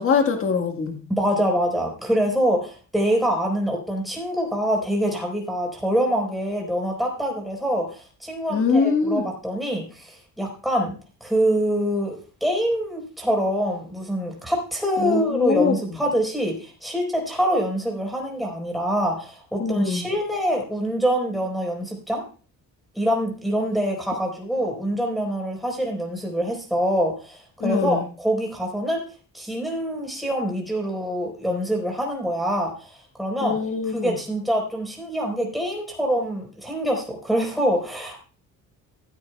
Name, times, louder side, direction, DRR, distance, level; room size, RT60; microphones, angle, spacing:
voice 1, 0.0-1.0 8.5-9.3 15.0-15.8 19.6-20.0 27.6-28.0 33.4-34.1, left 5 dB, 40° left, 5 dB, 1.6 m, -23 dB
voice 2, 1.1-10.9 11.2-22.2 22.9-29.0 29.3-33.6 33.9-38.2, equal, ahead, 1 dB, 4.2 m, -25 dB
15.5 x 14.0 x 2.3 m, 0.38 s
cardioid pair, 170°, 33 cm